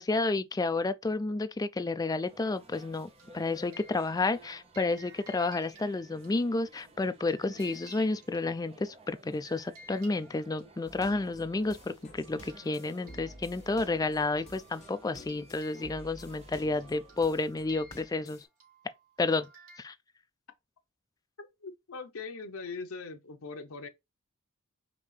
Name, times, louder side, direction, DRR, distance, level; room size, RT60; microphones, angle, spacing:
voice 1, 0.0-3.1 3.3-18.4 19.2-19.5 19.8-19.9, left 3 dB, 15° left, 0.3 m, -31 dB
sound 1, 2.3-17.4, right 1 dB, 30° right, 1.0 m, -56 dB
sound 2, 2.7-8.9 9.4-11.2 11.6-11.8 12.0-19.8, right 2 dB, 85° right, 2.5 m, -57 dB
sound 3, 10.9-18.5, left 1 dB, 35° left, 1.3 m, -52 dB
voice 2, 21.4-23.9, left 4 dB, 75° left, 0.8 m, -41 dB
5.2 x 2.7 x 3.2 m
head